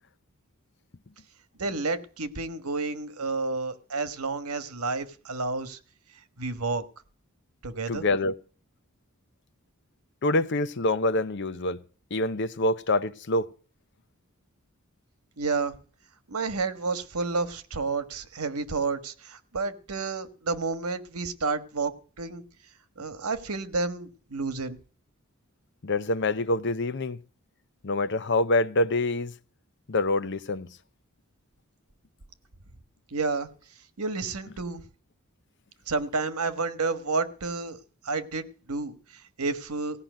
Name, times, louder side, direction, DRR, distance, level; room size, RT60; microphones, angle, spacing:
voice 1, 1.6-5.8 6.4-6.8 7.6-8.1 15.4-15.8 16.3-22.4 23.0-24.8 33.1-33.5 34.0-34.8 35.9-37.8 38.0-40.0, right 3 dB, 85° right, 1.3 m, -30 dB
voice 2, 7.9-8.3 10.2-11.8 12.1-13.5 25.8-27.2 27.8-29.3 29.9-30.7, left 2 dB, 55° left, 0.7 m, -26 dB
17.0 x 5.8 x 9.2 m
head